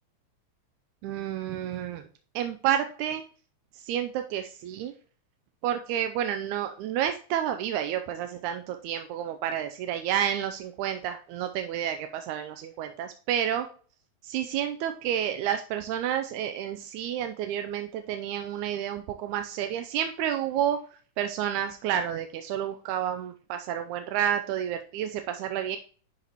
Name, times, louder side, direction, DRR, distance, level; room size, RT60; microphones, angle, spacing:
voice 1, 1.0-2.0 2.4-3.2 3.8-4.9 5.6-13.7 14.2-20.8 21.2-25.8, right 10 dB, 85° right, 7 dB, 2.0 m, -30 dB
11.0 x 4.0 x 2.9 m, 0.41 s
omnidirectional pair, 3.4 m